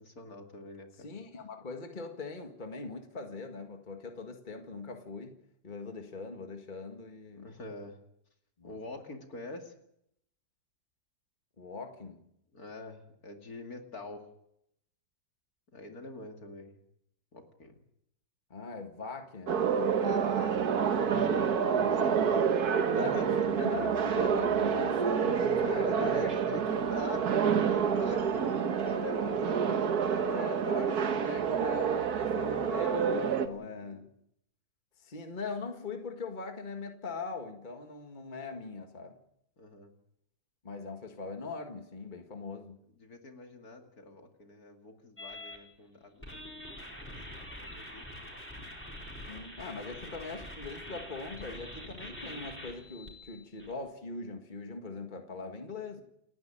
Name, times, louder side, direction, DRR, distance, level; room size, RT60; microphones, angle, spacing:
voice 1, 0.0-1.1 7.3-8.0 8.6-9.7 12.5-14.3 15.7-16.7 17.3-17.8 20.0-20.6 20.9-22.4 22.9-23.7 25.6-30.2 33.5-34.0 39.6-39.9 43.0-46.7 47.0-47.2 47.4-48.1 49.8-49.9, left 2 dB, 55° left, 4 dB, 2.9 m, -45 dB
voice 2, 1.0-5.4 5.6-7.5 8.6-8.8 11.6-12.2 18.5-19.7 22.1-22.3 22.9-23.2 23.6-26.3 28.4-28.8 30.2-34.1 35.0-39.2 40.6-42.8 49.3-56.0, left 4 dB, 25° left, 4 dB, 1.9 m, -41 dB
sound 1, 19.5-33.5, right 7 dB, 60° right, 1.7 m, -28 dB
sound 2, 45.2-45.6 46.2-53.7, left 1 dB, 5° left, 4.6 m, -45 dB
29.0 x 11.0 x 9.0 m, 0.76 s
omnidirectional pair, 1.9 m